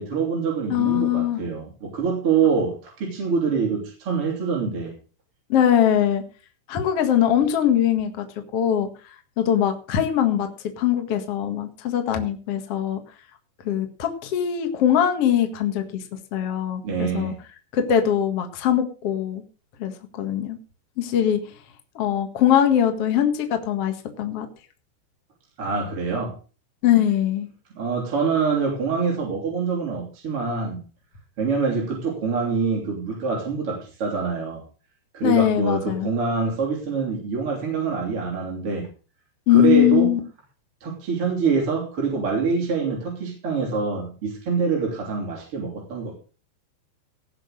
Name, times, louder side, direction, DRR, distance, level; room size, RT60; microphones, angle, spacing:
voice 1, 0.0-4.9 16.8-17.4 25.6-26.3 27.8-30.8 31.4-34.6 35.1-38.9 39.5-40.1 40.8-46.1, right 5 dB, 35° right, -2 dB, 3.5 m, -25 dB
voice 2, 0.7-1.4 5.5-6.2 6.7-8.3 8.5-10.5 10.8-13.0 13.6-16.0 16.3-17.3 17.7-19.4 19.8-20.6 21.0-21.4 21.9-24.5 26.8-27.5 35.2-36.1 39.5-40.2, left 10 dB, 60° left, 6 dB, 1.6 m, -21 dB
17.5 x 6.3 x 6.5 m, 0.36 s
omnidirectional pair, 5.5 m